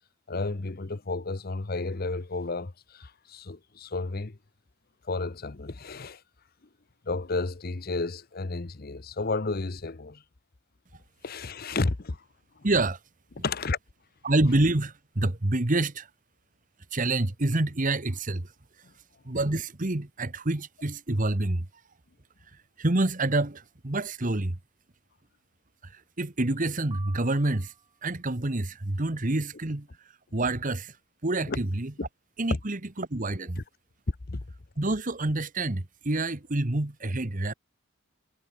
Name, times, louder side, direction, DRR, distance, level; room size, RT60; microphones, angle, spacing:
voice 1, 0.3-4.4 5.0-6.2 7.0-10.2 11.2-12.2 12.6-12.7 13.4-13.8 31.4-31.6 32.5-32.6 33.6-33.7 34.1-34.4, left 3 dB, 50° left, 0.9 m, -32 dB
voice 2, 12.6-13.0 14.2-16.1 16.9-18.5 19.2-21.6 22.8-24.6 25.8-27.7 28.0-29.9 30.3-31.0 31.2-31.9 32.4-33.6 34.8-37.5, right 2 dB, 40° right, 1.4 m, -27 dB
sound 1, 26.9-28.2, right 5 dB, 25° right, 1.5 m, -50 dB
head